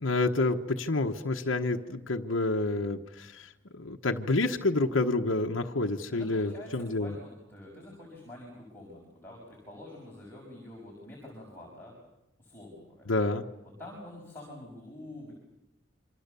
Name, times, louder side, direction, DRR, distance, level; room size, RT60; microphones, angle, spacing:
voice 1, 0.0-7.1 13.1-13.4, left 2 dB, 85° left, 3 dB, 1.2 m, -29 dB
voice 2, 6.1-12.0 12.4-13.2 13.6-15.3, left 1 dB, 10° left, -5 dB, 6.5 m, -47 dB
27.5 x 25.5 x 6.9 m, 0.93 s
head